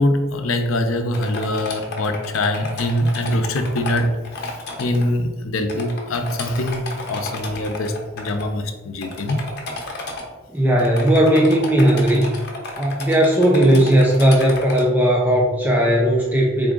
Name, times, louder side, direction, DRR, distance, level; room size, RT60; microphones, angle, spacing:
voice 1, 0.0-9.4, left 1 dB, 75° left, 7 dB, 0.5 m, -23 dB
sound 1, 1.1-5.0 5.7-8.4 9.0-10.2 10.8-14.9, left 2 dB, 55° left, 0.8 m, -32 dB
voice 2, 10.5-12.3 12.8-16.7, right 1 dB, 10° right, -2 dB, 0.4 m, -16 dB
3.8 x 3.5 x 3.7 m, 1.2 s
head